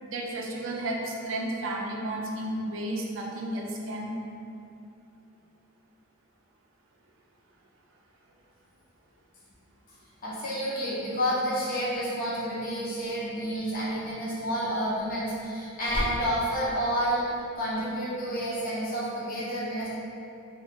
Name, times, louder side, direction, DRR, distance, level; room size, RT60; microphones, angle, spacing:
voice 1, 0.0-4.1, right 1 dB, 60° right, 0 dB, 0.4 m, -32 dB
voice 2, 10.2-19.9, equal, 40° left, -8 dB, 0.7 m, -30 dB
Slam, 13.8-17.6 17.9-18.3, equal, 10° left, 0.4 m, -38 dB
2.4 x 2.3 x 3.6 m, 2.8 s
head